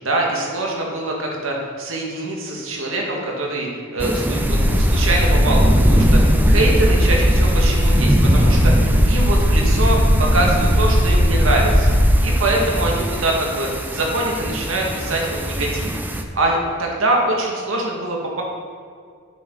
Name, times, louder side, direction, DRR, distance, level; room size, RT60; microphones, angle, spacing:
voice 1, 0.0-12.0 12.2-18.4, right 2 dB, 70° right, -1 dB, 2.0 m, -23 dB
sound 1, 4.0-16.2, equal, 10° right, 0.6 m, -23 dB
sound 2, 4.4-12.2, equal, 60° left, 1.7 m, -17 dB
10.5 x 8.4 x 4.0 m, 2.1 s
head